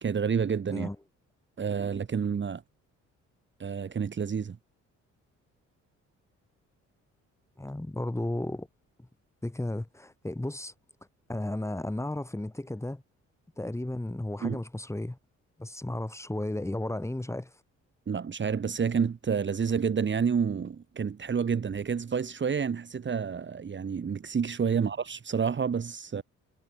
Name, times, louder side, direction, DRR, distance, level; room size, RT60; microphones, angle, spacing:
voice 1, 0.0-0.9 1.6-2.6 3.6-4.6 14.4-14.6 18.1-26.2, right 6 dB, 40° right, 2.1 m, -29 dB
voice 2, 7.6-8.7 9.4-10.7 11.3-13.0 13.6-15.2 15.6-17.5 24.7-24.8, left 1 dB, 10° left, 3.5 m, -34 dB
cardioid pair, 90°, 30 cm